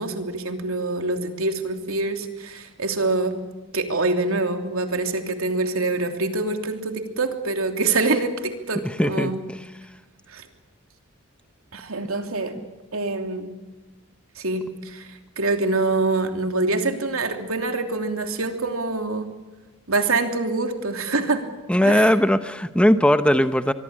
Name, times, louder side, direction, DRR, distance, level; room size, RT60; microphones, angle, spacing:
voice 1, 0.0-3.4 3.7-9.4 10.3-10.5 11.7-12.6 12.9-13.5 14.3-19.3 19.9-21.4 21.8-22.1, right 3 dB, 75° right, 5 dB, 3.0 m, -25 dB
voice 2, 8.8-9.3 12.5-12.7 21.7-23.7, equal, 5° left, 10 dB, 0.7 m, -19 dB
25.0 x 23.0 x 8.8 m, 1.2 s
head